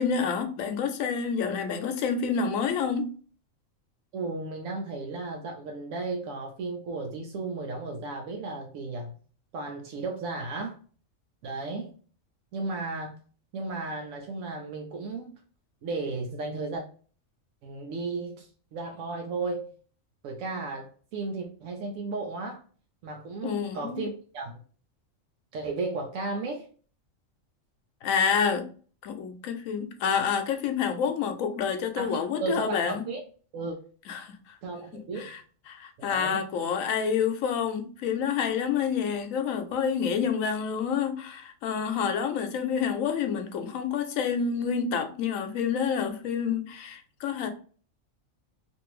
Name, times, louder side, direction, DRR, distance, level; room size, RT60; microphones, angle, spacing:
voice 1, 0.0-3.1 23.4-24.0 28.0-28.7 29.0-33.1 34.1-34.6 35.2-35.4 35.7-47.5, left 6 dB, 85° left, 1.0 m, -28 dB
voice 2, 4.1-9.1 9.5-10.8 11.4-11.9 12.5-13.2 13.5-15.3 15.8-16.8 17.6-19.7 20.2-22.6 23.0-24.6 25.5-26.7 32.0-33.2 33.5-33.8 34.6-35.3 36.0-36.4, right 3 dB, 80° right, 1.0 m, -34 dB
2.6 x 2.6 x 3.0 m
omnidirectional pair, 1.4 m